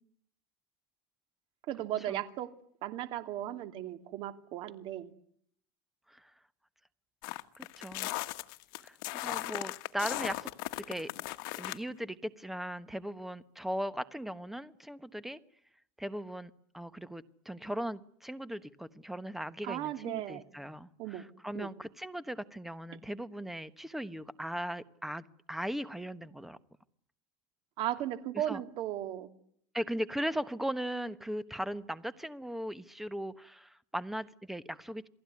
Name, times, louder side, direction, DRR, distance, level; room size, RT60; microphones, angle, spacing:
voice 1, 1.7-2.5 2.8-5.1 19.6-20.4 21.0-21.2 21.5-21.7 27.8-29.3, right 12 dB, 50° right, 10 dB, 2.7 m, -36 dB
sound 1, 7.2-11.8, left 21 dB, 80° left, 1.5 m, -37 dB
voice 2, 7.6-8.1 8.8-10.5 10.9-11.1 11.6-15.4 16.0-26.6 28.3-28.6 29.7-35.1, equal, ahead, 14 dB, 1.2 m, -38 dB
28.5 x 19.0 x 9.8 m, 0.67 s
cardioid pair, 155°, 11 cm